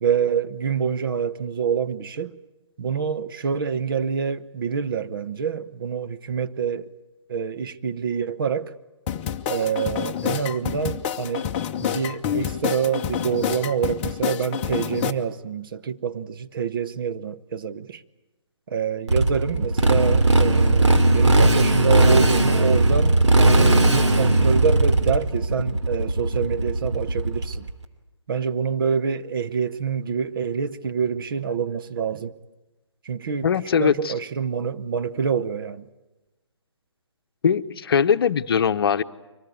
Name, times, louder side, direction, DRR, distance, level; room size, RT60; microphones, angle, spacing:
voice 1, 0.0-2.4 2.8-6.9 7.3-8.7 9.5-11.5 11.8-18.0 18.7-27.7 28.3-32.3 33.0-33.5 33.8-35.9, right 7 dB, 45° right, 0.9 m, -26 dB
sound 1, 9.1-15.1, left 9 dB, 20° left, 0.8 m, -28 dB
Motorcycle, 19.1-27.7, right 2 dB, 70° right, 2.8 m, -18 dB
voice 2, 33.4-34.1 37.4-39.0, left 7 dB, 50° left, 0.9 m, -21 dB
24.5 x 19.0 x 9.5 m
figure-of-eight pair, 150°, 15 cm